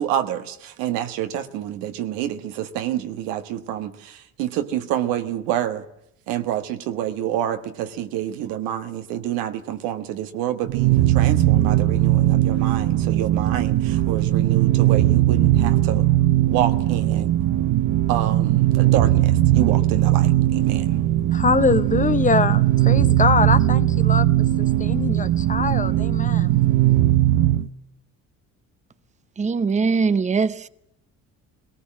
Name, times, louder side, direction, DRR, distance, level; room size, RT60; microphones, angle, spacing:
voice 1, 0.0-5.8 6.3-16.1 16.5-17.3 18.1-21.0, right 11 dB, 90° right, 1.5 m, -27 dB
sound 1, 10.7-27.7, right 14 dB, 60° right, 0.8 m, -19 dB
voice 2, 21.3-26.5, left 5 dB, 25° left, 0.7 m, -23 dB
voice 3, 29.4-30.7, right 5 dB, 20° right, 0.7 m, -21 dB
22.0 x 18.0 x 7.5 m
supercardioid pair, 90°, 34 cm